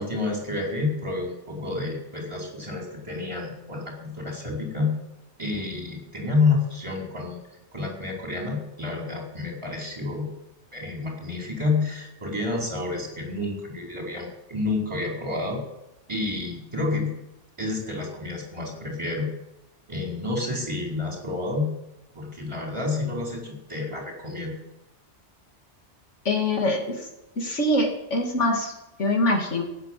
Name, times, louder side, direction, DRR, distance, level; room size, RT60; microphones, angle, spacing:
voice 1, 0.0-4.9 5.4-7.4 7.7-10.3 10.7-15.6 16.1-17.1 17.6-19.3 19.9-21.7 22.1-24.5, left 3 dB, 25° right, -1 dB, 4.6 m, -29 dB
voice 2, 26.3-26.8 27.4-28.7 29.0-29.6, left 1 dB, 80° left, 2 dB, 2.8 m, -23 dB
17.0 x 9.4 x 7.6 m, 0.91 s
omnidirectional pair, 1.2 m